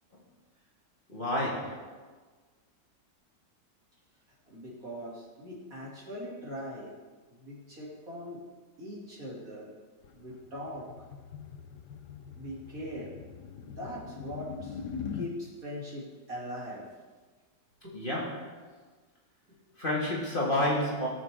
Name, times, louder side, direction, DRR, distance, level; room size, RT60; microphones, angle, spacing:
voice 1, 1.1-2.0 17.9-18.6 19.8-21.1, left 1 dB, 30° left, -5 dB, 1.9 m, -30 dB
voice 2, 4.4-6.9 7.3-8.4 8.8-9.7 10.1-10.9 12.3-13.1 13.6-14.8 15.1-16.8 17.8-17.9, equal, 55° right, -5 dB, 3.2 m, -41 dB
sound 1, 10.0-15.3, left 7 dB, 70° left, 1.3 m, -42 dB
18.5 x 6.4 x 3.5 m, 1.4 s
omnidirectional pair, 1.9 m